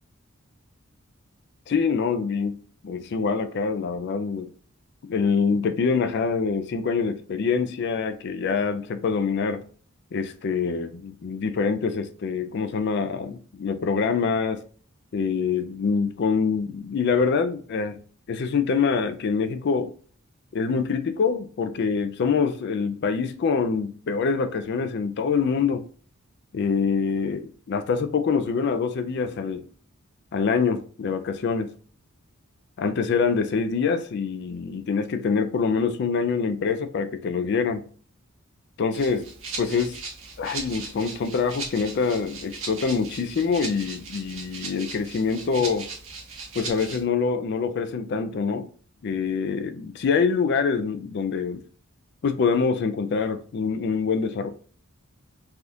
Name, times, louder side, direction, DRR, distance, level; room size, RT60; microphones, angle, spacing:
voice 1, 1.7-2.6 2.8-4.5 5.1-9.6 10.1-14.6 15.1-18.0 18.3-19.9 20.5-25.9 26.5-29.7 30.3-31.7 32.8-37.9 38.8-39.3 39.6-40.0 40.4-45.9 46.5-48.7 49.0-51.6 52.2-54.5, left 5 dB, 50° left, 0.3 m, -25 dB
Rattle (instrument), 38.9-47.0, right 4 dB, 60° right, 0.9 m, -38 dB
3.4 x 2.3 x 2.6 m
head